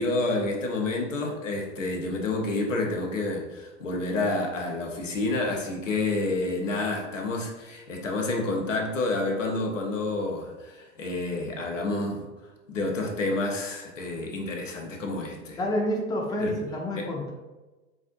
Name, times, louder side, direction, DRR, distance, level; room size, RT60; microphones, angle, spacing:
voice 1, 0.0-12.2 12.7-15.6 16.4-16.5 17.0-17.1, left 2 dB, 75° left, 0 dB, 1.0 m, -29 dB
voice 2, 15.6-17.3, equal, 10° left, 0 dB, 0.6 m, -28 dB
7.3 x 2.6 x 2.6 m, 1.1 s
figure-of-eight pair, 85°, 38 cm